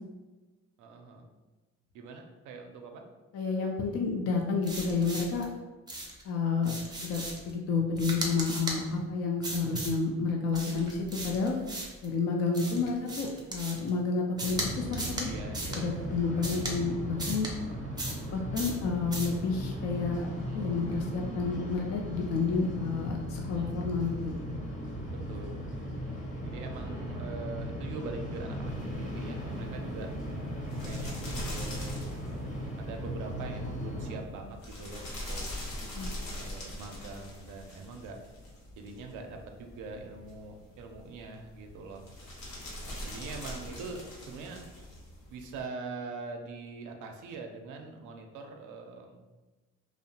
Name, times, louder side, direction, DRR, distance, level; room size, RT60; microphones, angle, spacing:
voice 1, 0.8-1.3 1.9-3.0 12.6-12.9 15.2-16.1 17.6-18.0 20.5-20.9 23.6-23.9 25.1-25.6 26.0-30.1 30.8-35.4 36.3-38.2 38.8-42.1 42.9-44.7 45.3-49.2, right 4 dB, 80° right, 3 dB, 0.5 m, -43 dB
voice 2, 3.3-5.5 6.2-6.7 7.0-11.6 12.0-15.3 15.7-17.5 18.3-20.3 20.5-24.4 36.0-36.2, left 4 dB, 55° left, 1 dB, 0.4 m, -30 dB
sound 1, 4.6-5.5 5.9-6.2 6.6-7.5 8.0-8.8 9.4-10.0 10.5-12.1 12.5-13.9 14.4-14.7 14.9-15.3 15.5-15.8 16.4-16.8 17.2-17.5 18.0-18.3 18.6-18.8 19.1-19.4, right 1 dB, 15° right, 0.5 m, -37 dB
sound 2, 14.5-34.2, equal, 25° left, 0.7 m, -37 dB
sound 3, 28.7-45.6, left 1 dB, 80° left, 0.9 m, -43 dB
2.7 x 2.0 x 2.7 m, 1.2 s
cardioid pair, 90°, 30 cm